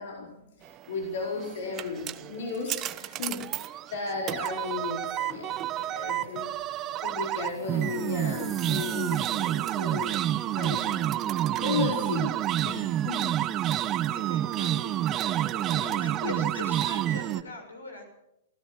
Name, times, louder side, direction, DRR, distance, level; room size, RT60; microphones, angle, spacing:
voice 1, 0.0-6.5 7.0-10.2 10.5-11.1 11.6-12.4 12.6-13.4 14.7-14.9 15.7-16.4, left 4 dB, 55° left, 0 dB, 4.6 m, -35 dB
sound 1, 1.2-17.4, right 12 dB, 25° right, 1.1 m, -29 dB
sound 2, 7.4-10.6, right 3 dB, 5° right, 3.3 m, -48 dB
voice 2, 14.1-18.0, left 2 dB, 75° left, 6 dB, 6.8 m, -42 dB
28.5 x 16.5 x 6.1 m, 0.82 s
figure-of-eight pair, 105°, 0 cm